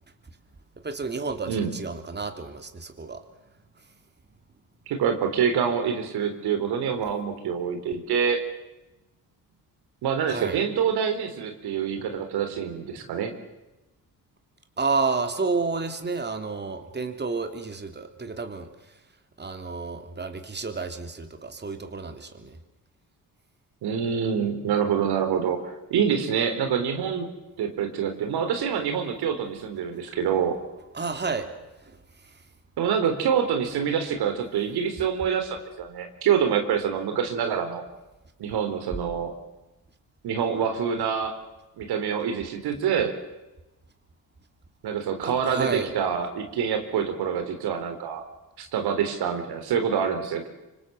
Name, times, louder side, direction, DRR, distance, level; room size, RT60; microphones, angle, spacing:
voice 1, 0.8-3.2 10.3-10.6 12.9-13.0 14.8-18.7 19.4-22.6 30.9-31.5 31.9-32.0 45.2-45.9, right 4 dB, 25° right, 7 dB, 3.2 m, -30 dB
voice 2, 4.9-8.4 10.0-13.3 23.8-27.3 27.6-30.6 32.8-37.8 38.4-39.3 40.2-41.3 41.8-43.1 44.8-48.2 48.6-50.5, right 7 dB, 85° right, 6 dB, 3.9 m, -26 dB
26.0 x 25.5 x 7.9 m, 1.0 s
cardioid pair, 85°, 37 cm